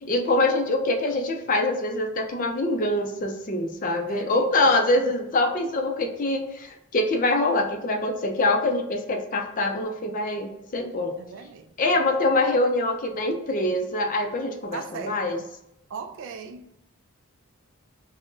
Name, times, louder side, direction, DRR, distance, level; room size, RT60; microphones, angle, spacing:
voice 1, 0.0-11.1 11.8-15.4, left 2 dB, 40° left, 3 dB, 0.4 m, -24 dB
voice 2, 4.1-4.5 4.9-5.1 11.2-12.2 14.7-15.5 15.9-16.6, right 6 dB, 60° right, 7 dB, 0.3 m, -39 dB
2.5 x 2.1 x 3.6 m, 0.83 s
head